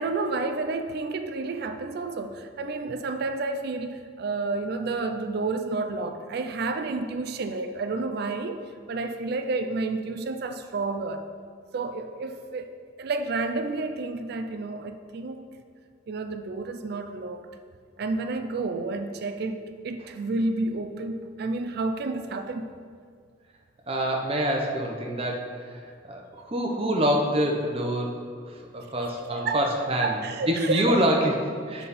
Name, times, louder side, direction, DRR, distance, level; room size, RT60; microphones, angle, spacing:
voice 1, 0.0-8.6 8.9-11.2 11.7-12.7 13.0-15.5 16.1-17.4 18.0-19.6 19.8-22.7 29.2-29.6 30.0-31.0 31.8-31.9, right 3 dB, 55° right, 8 dB, 0.4 m, -30 dB
voice 2, 23.9-25.8 26.1-28.2 28.5-30.2 30.5-31.9, equal, 30° right, 0 dB, 0.7 m, -26 dB
7.3 x 4.1 x 4.1 m, 2.1 s
head